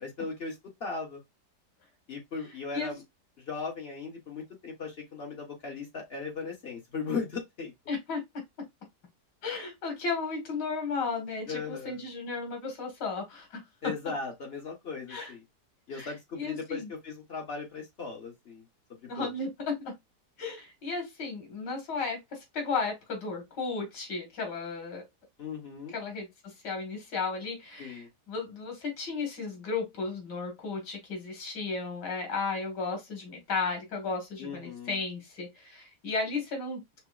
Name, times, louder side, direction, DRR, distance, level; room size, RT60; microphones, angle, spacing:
voice 1, 0.0-1.2 2.1-3.0 3.5-7.7 11.5-12.0 13.8-15.4 15.9-18.6 19.0-19.3 25.4-25.9 27.8-28.1 34.4-35.0, left 4 dB, 40° left, 1.1 m, -37 dB
voice 2, 7.9-8.2 9.4-13.9 15.1-15.3 15.9-16.9 19.1-20.0 20.4-25.0 25.9-36.8, left 4 dB, 90° left, 2.2 m, -34 dB
5.8 x 2.0 x 2.3 m
omnidirectional pair, 1.8 m